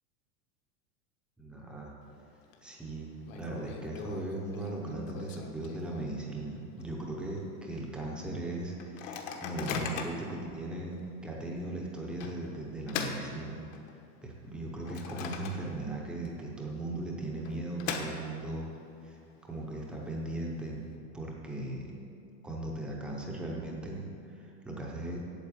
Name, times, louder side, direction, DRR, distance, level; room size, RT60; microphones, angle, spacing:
voice 1, 1.4-1.9 2.6-3.1 3.3-13.6 14.2-18.7 19.0-20.8 21.1-21.9 22.4-25.2, right 2 dB, ahead, -2 dB, 0.6 m, -38 dB
Microwave oven, 2.0-2.5 2.8-2.9 3.3-6.3 6.8-6.9 7.1-7.5 8.0-8.1 8.8-10.3 10.9-11.1 12.2-14.0 14.5-16.0 16.3-16.4 17.2-18.6, left 6 dB, 55° left, 1.3 m, -40 dB
8.9 x 7.7 x 8.3 m, 2.5 s
supercardioid pair, 180°, 46 cm